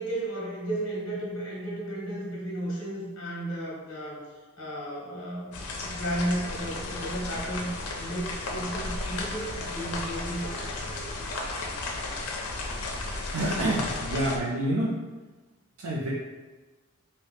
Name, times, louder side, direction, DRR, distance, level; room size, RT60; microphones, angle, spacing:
voice 1, 0.0-4.2 4.6-7.7 8.0-11.3, right 1 dB, 55° left, -5 dB, 1.1 m, -34 dB
sound 1, 5.5-14.4, left 2 dB, 90° left, 0.5 m, -34 dB
voice 2, 13.0-15.0 15.8-16.1, right 1 dB, 70° right, -5 dB, 0.5 m, -28 dB
3.3 x 2.7 x 2.7 m, 1.3 s
head